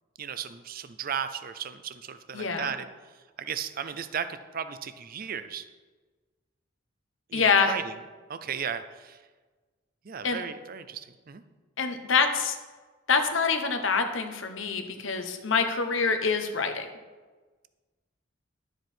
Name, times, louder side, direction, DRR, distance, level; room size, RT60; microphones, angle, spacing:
voice 1, 0.2-2.9 3.1-5.7 7.3-8.0 8.3-9.2 10.0-11.4, right 7 dB, 45° right, 12 dB, 0.5 m, -35 dB
voice 2, 2.3-2.7 7.3-7.7 10.2-10.4 11.8-12.6 13.1-16.9, left 5 dB, 75° left, 6 dB, 1.1 m, -25 dB
11.5 x 7.8 x 4.5 m, 1.3 s
head